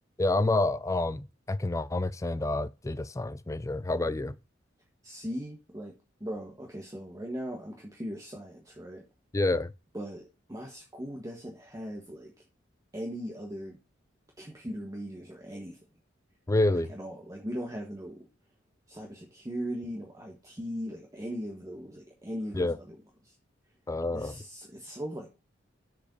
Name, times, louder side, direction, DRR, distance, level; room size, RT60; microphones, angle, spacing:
voice 1, 0.2-4.4 9.3-9.7 16.5-16.9 22.6-22.8 23.9-24.3, left 2 dB, 15° left, 0.4 m, -28 dB
voice 2, 5.0-5.9 6.2-9.0 9.9-12.3 12.9-13.8 14.4-15.8 16.9-18.3 18.9-22.9 23.2-23.3 24.1-25.3, equal, 15° right, 1.4 m, -39 dB
7.0 x 5.0 x 6.8 m
head